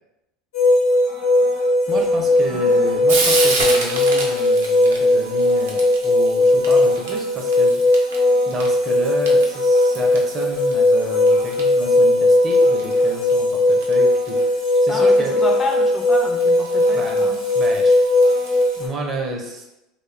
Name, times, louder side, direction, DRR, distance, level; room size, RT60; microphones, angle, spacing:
sound 1, 0.5-18.9, left 1 dB, 90° left, 0.8 m, -18 dB
voice 1, 1.9-8.1 8.5-15.3 16.9-17.9 18.3-19.6, right 1 dB, 35° right, 2 dB, 0.5 m, -31 dB
Frying (food), 1.9-18.8, right 3 dB, 85° right, 0.5 m, -32 dB
voice 2, 14.9-17.4, left 2 dB, 30° left, 2 dB, 0.4 m, -29 dB
2.6 x 2.1 x 2.4 m, 0.92 s
supercardioid pair, 95°, 0 cm